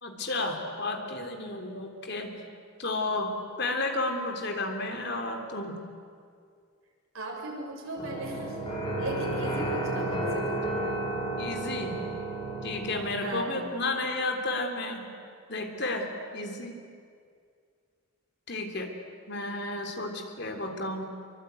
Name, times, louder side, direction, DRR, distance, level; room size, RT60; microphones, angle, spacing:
voice 1, 0.0-2.4 2.8-5.8 11.4-12.0 12.6-15.1 15.5-16.8 18.5-18.9 19.3-21.0, left 2 dB, 55° left, 4 dB, 3.2 m, -32 dB
voice 2, 7.1-8.6 9.0-10.9 13.2-13.7, right 1 dB, 80° right, -1 dB, 7.1 m, -37 dB
sound 1, 8.0-13.2, right 2 dB, 25° left, 5.9 m, -32 dB
26.0 x 24.0 x 9.3 m, 2.2 s
head